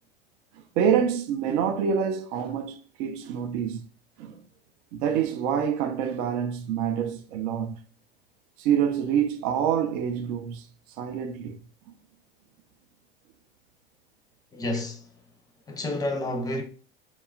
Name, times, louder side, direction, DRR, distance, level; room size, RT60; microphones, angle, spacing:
voice 1, 0.8-3.9 4.2-4.4 4.9-7.8 8.6-10.6 11.0-11.6, right 8 dB, 60° right, 0.5 m, -26 dB
voice 2, 14.5-15.1 15.7-16.6, left 1 dB, 10° left, 0.5 m, -30 dB
2.9 x 2.3 x 2.3 m
hypercardioid pair, 85°, 30 cm